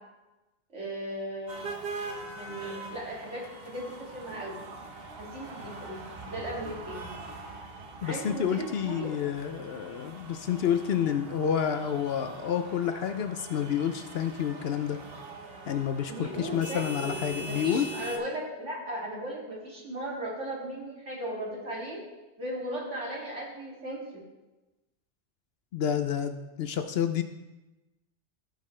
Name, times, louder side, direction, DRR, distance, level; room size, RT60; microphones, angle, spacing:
voice 1, 0.7-1.7 2.4-4.6 5.2-7.1 8.0-9.2 16.1-17.1 17.5-22.0 22.4-24.2, right 1 dB, 75° right, -5 dB, 2.8 m, -37 dB
sound 1, 1.5-18.2, right 3 dB, 55° right, 1.2 m, -42 dB
voice 2, 8.0-15.0 15.7-17.9 25.7-27.2, left 8 dB, 65° left, 8 dB, 0.7 m, -29 dB
15.0 x 5.5 x 3.2 m, 1.1 s
omnidirectional pair, 1.2 m